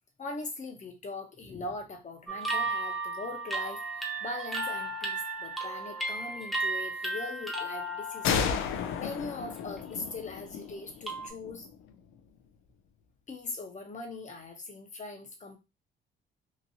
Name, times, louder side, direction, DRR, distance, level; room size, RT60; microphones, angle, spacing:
voice 1, 0.2-8.5 9.0-11.7 13.3-15.6, left 3 dB, 35° left, 4 dB, 0.9 m, -41 dB
sound 1, 2.3-9.1 9.6-9.9 11.1-11.3, right 2 dB, ahead, 0.9 m, -34 dB
sound 2, 8.2-11.8, left 7 dB, 85° left, 0.5 m, -33 dB
2.9 x 2.5 x 2.7 m, 0.26 s
cardioid pair, 90°, 20 cm